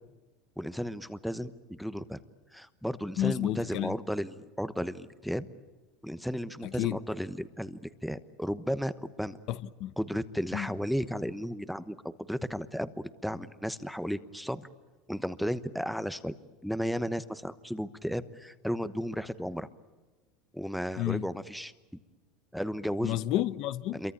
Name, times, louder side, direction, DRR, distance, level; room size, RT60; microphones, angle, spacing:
voice 1, 0.6-2.2 2.5-5.5 6.0-9.4 10.0-12.0 12.3-14.7 15.1-16.3 16.6-19.7 20.5-21.7 22.5-23.2 23.9-24.1, equal, ahead, 1.0 m, -34 dB
voice 2, 3.2-3.9 6.8-7.0 9.5-9.9 10.5-10.7 21.0-21.2 23.0-24.1, left 13 dB, 55° left, 1.0 m, -30 dB
27.5 x 23.5 x 8.5 m
supercardioid pair, 130°, 0 cm